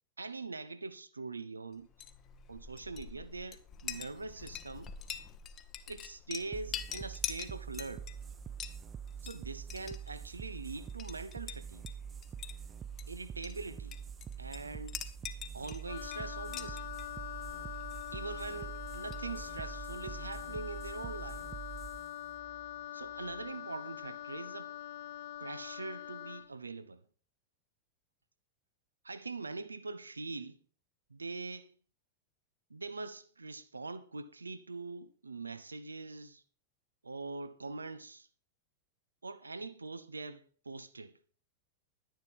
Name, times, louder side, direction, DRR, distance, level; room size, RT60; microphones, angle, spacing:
voice 1, 0.2-1.9 2.5-4.9 5.9-8.1 9.2-11.9 13.1-14.0 14.4-15.0 15.5-16.9 18.1-21.4 22.9-24.7 25.4-27.0 29.0-30.6 31.1-31.7 32.7-36.4 37.0-38.3 39.2-41.2, right 3 dB, 80° right, 0.8 m, -43 dB
Chink clink, 1.8-19.7, left 9 dB, 30° left, 1.2 m, -46 dB
sound 1, 6.5-23.6, right 8 dB, 25° right, 0.5 m, -45 dB
Wind instrument woodwind instrument, 15.9-26.5, left 12 dB, 55° left, 0.8 m, -44 dB
11.5 x 10.5 x 4.5 m
figure-of-eight pair, 90°, 0 cm